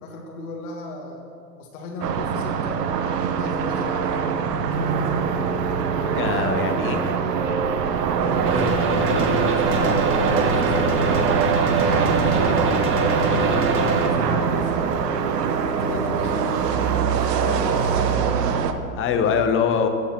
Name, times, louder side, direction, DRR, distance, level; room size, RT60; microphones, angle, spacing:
voice 1, 0.0-1.2 1.6-2.9 3.3-5.3 8.2-11.1 11.8-12.8 13.0-15.4 15.7-16.7 17.2-19.4, left 3 dB, 60° left, 0 dB, 1.8 m, -35 dB
sound 1, 2.0-18.7, right 7 dB, 75° right, 1.1 m, -23 dB
sound 2, 4.7-18.2, left 1 dB, 5° left, 1.5 m, -38 dB
voice 2, 6.1-7.1 19.0-19.9, left 6 dB, 25° left, 7 dB, 1.0 m, -22 dB
sound 3, 8.4-14.1, right 2 dB, 25° right, 1.5 m, -23 dB
14.0 x 7.2 x 6.0 m, 2.5 s
hypercardioid pair, 120°, 49 cm